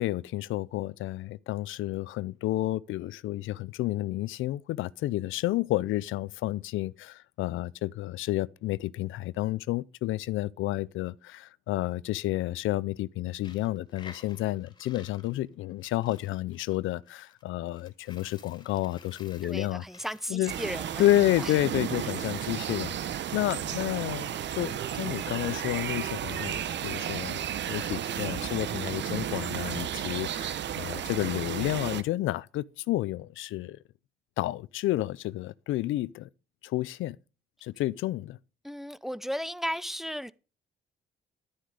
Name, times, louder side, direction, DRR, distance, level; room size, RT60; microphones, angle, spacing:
voice 1, 0.0-19.8 20.3-20.5 21.0-24.3 24.6-27.4 27.7-33.8 34.4-36.3 36.6-37.2 37.6-38.4, left 15 dB, 85° left, 0.5 m, -30 dB
Coin (dropping), 13.3-21.5, left 5 dB, 20° left, 3.9 m, -54 dB
voice 2, 19.4-21.0 21.4-21.5 38.6-40.3, equal, ahead, 0.7 m, -35 dB
sound 1, 20.5-32.0, right 9 dB, 65° right, 1.1 m, -33 dB
11.5 x 10.0 x 5.0 m
cardioid pair, 90°, 20 cm